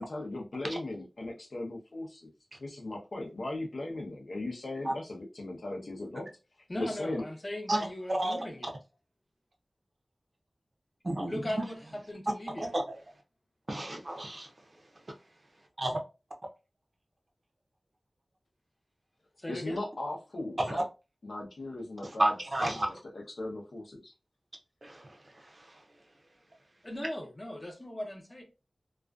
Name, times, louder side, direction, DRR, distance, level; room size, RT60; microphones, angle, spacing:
voice 1, 0.0-2.3 2.6-6.3 6.8-7.2 19.5-20.8 21.2-22.3 22.6-22.8 23.1-24.1, left 2 dB, 80° left, 0.7 m, -38 dB
voice 2, 6.7-8.7 11.3-12.7 19.4-19.8 26.8-28.4, left 1 dB, 35° left, 0.8 m, -39 dB
voice 3, 7.7-8.4 11.0-11.6 12.6-12.8 13.7-14.5 15.8-16.0 20.6-20.8 22.2-22.9 24.8-25.2 25.4-25.8, right 1 dB, 50° right, 0.6 m, -31 dB
2.4 x 2.2 x 2.3 m
wide cardioid pair, 60°, 0 cm